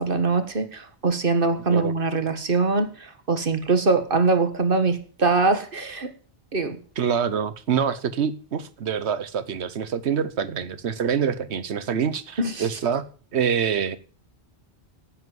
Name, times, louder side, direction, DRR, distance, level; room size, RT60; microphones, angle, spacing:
voice 1, 0.0-6.1 6.5-6.8 12.4-12.7, right 3 dB, 55° right, 8 dB, 1.8 m, -23 dB
voice 2, 7.0-13.0 13.3-14.0, right 7 dB, 80° right, 15 dB, 1.2 m, -25 dB
11.0 x 8.9 x 7.7 m, 0.42 s
omnidirectional pair, 1.1 m